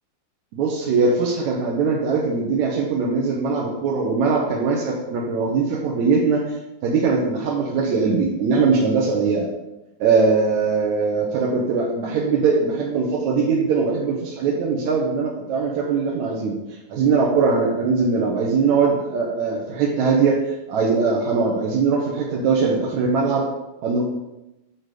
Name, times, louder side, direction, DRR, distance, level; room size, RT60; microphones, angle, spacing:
voice 1, 0.5-6.5 6.8-9.5 10.0-16.6 16.9-20.4 20.7-23.4 23.8-24.0, right 4 dB, 65° right, -4 dB, 2.2 m, -21 dB
9.1 x 6.2 x 4.9 m, 0.95 s
omnidirectional pair, 4.1 m